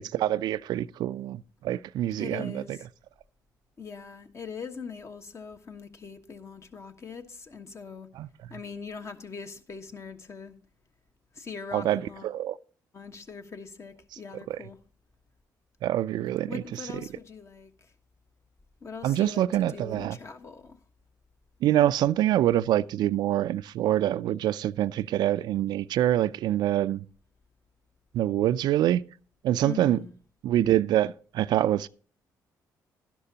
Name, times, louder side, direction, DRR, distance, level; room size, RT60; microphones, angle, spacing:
voice 1, 0.0-2.8 8.2-8.3 11.7-12.6 14.5-14.6 15.8-16.6 19.0-20.2 21.6-27.0 28.1-29.0 29.4-30.0 30.4-31.9, right 12 dB, 75° right, 0.4 m, -25 dB
voice 2, 2.2-2.8 3.8-8.1 8.5-10.6 11.3-12.3 12.9-14.8 16.5-17.9 18.8-20.8 29.6-30.1, left 5 dB, 40° left, 1.3 m, -42 dB
11.5 x 11.5 x 2.8 m
cardioid pair, 75°, 7 cm